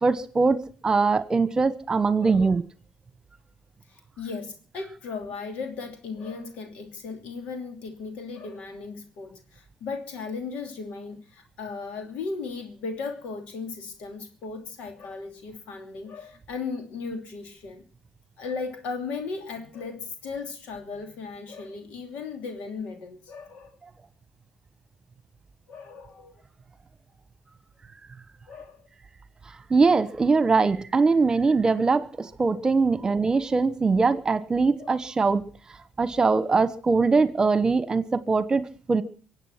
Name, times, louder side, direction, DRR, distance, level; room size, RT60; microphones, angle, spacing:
voice 1, 0.0-2.6 29.7-35.4 36.0-39.0, right 4 dB, 30° right, 1.2 m, -22 dB
voice 2, 2.2-2.5 3.9-17.8 18.4-23.8 25.7-26.4 28.5-28.8 34.8-35.0, left 4 dB, 75° left, 2.9 m, -36 dB
24.0 x 8.4 x 5.9 m
supercardioid pair, 60°, 2 cm